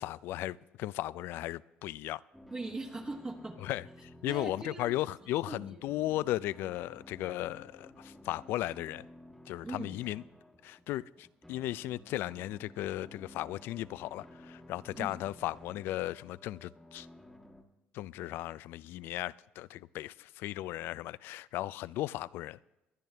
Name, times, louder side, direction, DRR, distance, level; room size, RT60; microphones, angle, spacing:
voice 1, 0.0-2.2 3.6-9.1 9.5-10.2 10.6-17.1 17.9-22.6, left 15 dB, 75° left, 0.3 m, -36 dB
sound 1, 2.3-17.6, left 1 dB, 5° left, 1.2 m, -54 dB
voice 2, 2.5-3.6 4.2-5.0 5.5-5.8 9.6-10.0 14.9-15.2, right 2 dB, 20° right, 1.1 m, -40 dB
22.0 x 10.5 x 3.4 m
cardioid pair, 130°, 4 cm